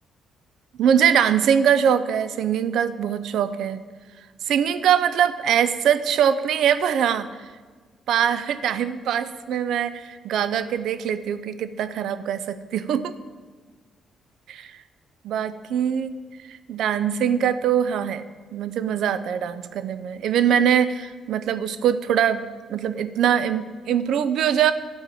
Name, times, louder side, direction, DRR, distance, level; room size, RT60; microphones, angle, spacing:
voice 1, 0.8-3.8 4.4-7.3 8.1-13.1 14.5-14.7 15.2-16.1 16.5-18.2 18.5-22.4 22.7-24.7, right 8 dB, 75° right, 13 dB, 0.5 m, -22 dB
11.5 x 4.5 x 7.8 m, 1.4 s
cardioid pair, 90°, 0 cm